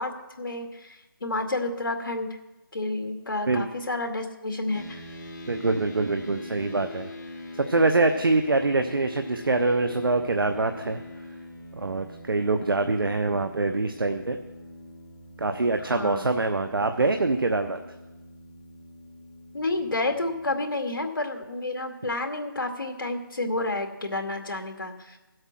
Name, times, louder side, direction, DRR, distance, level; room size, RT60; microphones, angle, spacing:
voice 1, 0.0-2.4 2.7-5.0 15.9-16.3 19.5-25.2, left 2 dB, 70° left, 4 dB, 2.2 m, -30 dB
sound 1, 4.7-20.6, left 2 dB, 50° left, 3.2 m, -43 dB
voice 2, 5.5-7.1 7.6-11.0 11.8-14.4 15.4-17.8, right 3 dB, 75° right, 7 dB, 1.0 m, -24 dB
16.5 x 8.0 x 6.0 m, 1.1 s
figure-of-eight pair, 170°, 12 cm